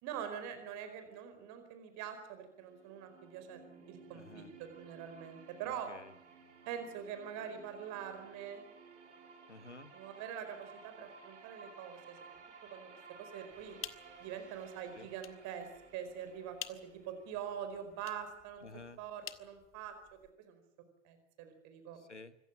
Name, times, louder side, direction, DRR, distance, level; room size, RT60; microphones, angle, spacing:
voice 1, 0.0-3.6 3.9-5.9 6.7-8.6 9.9-12.3 12.6-13.8 14.2-15.7 15.9-18.7 19.0-19.9 20.4-20.6 21.0-22.0, right 8 dB, 55° right, 8 dB, 4.7 m, -44 dB
sound 1, 2.4-18.4, right 4 dB, 75° right, 3.1 m, -57 dB
voice 2, 4.1-4.5 5.6-6.1 9.5-9.9 14.9-15.1 18.6-19.0 21.9-22.4, left 3 dB, 90° left, 16 dB, 1.1 m, -52 dB
sound 2, 13.5-20.3, left 11 dB, 35° left, 1.5 m, -52 dB
25.5 x 15.5 x 9.0 m, 0.79 s
figure-of-eight pair, 65°, 35 cm